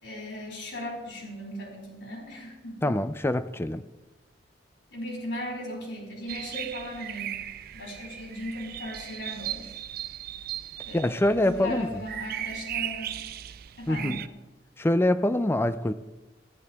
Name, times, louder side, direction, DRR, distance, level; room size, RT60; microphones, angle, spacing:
voice 1, 0.0-3.0 4.9-7.4 7.7-9.8 10.8-13.1 13.8-14.2, equal, 75° left, 5.1 m, -37 dB
voice 2, 2.8-3.8 10.9-11.9 13.9-14.2 14.8-15.9, left 1 dB, 15° left, 0.4 m, -24 dB
sound 1, 6.3-14.3, right 11 dB, 55° right, 0.4 m, -37 dB
15.0 x 11.0 x 3.5 m
head